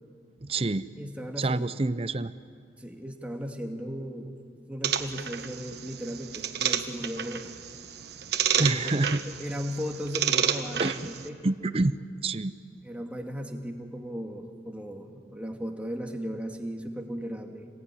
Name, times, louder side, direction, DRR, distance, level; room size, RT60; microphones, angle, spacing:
voice 1, 0.4-0.9 1.4-2.3 8.6-9.2 10.8-11.1 11.4-12.0 12.2-12.5, right 2 dB, 35° right, 14 dB, 0.6 m, -27 dB
voice 2, 1.0-1.7 2.8-4.3 4.7-7.5 8.6-8.9 9.4-11.4 12.8-17.7, equal, 5° right, 2 dB, 2.2 m, -36 dB
sound 1, 4.8-11.3, right 8 dB, 60° right, 1.3 m, -31 dB
27.5 x 20.5 x 9.9 m, 2.2 s
head